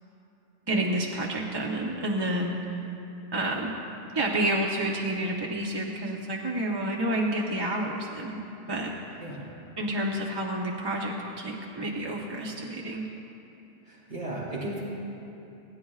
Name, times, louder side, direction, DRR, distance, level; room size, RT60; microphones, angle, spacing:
voice 1, 0.7-2.6 3.3-3.7 4.1-8.9 9.8-13.1, right 1 dB, 25° right, -2 dB, 0.7 m, -29 dB
voice 2, 9.2-9.5 13.9-14.8, right 1 dB, 80° right, -6 dB, 2.6 m, -35 dB
28.5 x 9.9 x 2.4 m, 3.0 s
omnidirectional pair, 1.2 m